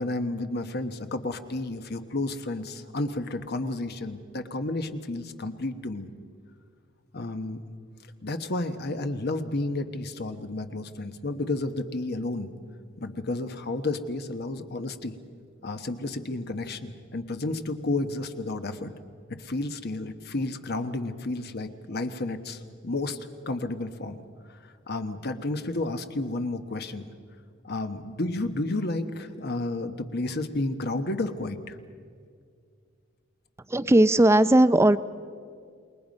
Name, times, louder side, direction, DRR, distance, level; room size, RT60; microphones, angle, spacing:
voice 1, 0.0-6.1 7.1-7.6 8.2-12.5 13.0-15.1 15.6-18.9 19.3-23.2 23.5-24.2 24.5-24.6 24.9-27.0 27.6-31.8, left 2 dB, 55° left, 8 dB, 1.2 m, -31 dB
voice 2, 33.7-35.0, right 1 dB, 15° right, 14 dB, 0.5 m, -18 dB
27.5 x 21.5 x 5.3 m, 2.2 s
head